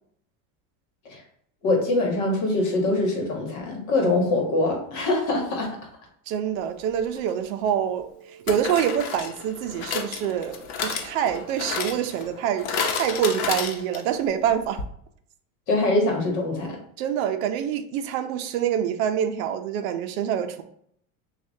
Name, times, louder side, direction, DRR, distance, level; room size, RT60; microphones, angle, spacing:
voice 1, 1.6-5.8 15.7-16.8, left 2 dB, 40° left, 1 dB, 1.2 m, -23 dB
voice 2, 6.3-8.1 8.5-14.8 17.0-20.6, right 9 dB, 70° right, 8 dB, 0.6 m, -26 dB
sound 1, 7.2-7.3 8.5-14.2 14.5-14.6 14.8-14.9, left 5 dB, 65° left, 0.9 m, -31 dB
6.6 x 2.4 x 2.7 m, 0.67 s
cardioid pair, 170°, 44 cm